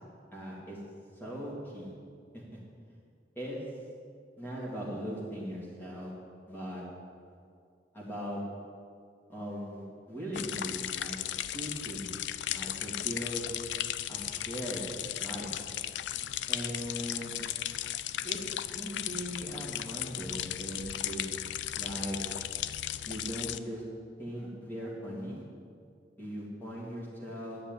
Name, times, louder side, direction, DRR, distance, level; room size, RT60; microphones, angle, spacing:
voice 1, 0.3-0.8 1.2-1.9 3.4-3.6 4.4-6.1 6.5-6.8 7.9-8.4 9.3-11.2 11.5-12.2 12.5-13.5 14.1-14.9 15.2-15.5 16.5-17.3 18.2-18.4 18.7-21.2 21.7-22.2 23.1-23.8 24.2-25.4 26.2-27.7, equal, 10° left, -6 dB, 3.1 m, -39 dB
sound 1, 10.3-23.6, left 12 dB, 75° left, 0.4 m, -36 dB
11.0 x 7.1 x 9.3 m, 2.2 s
head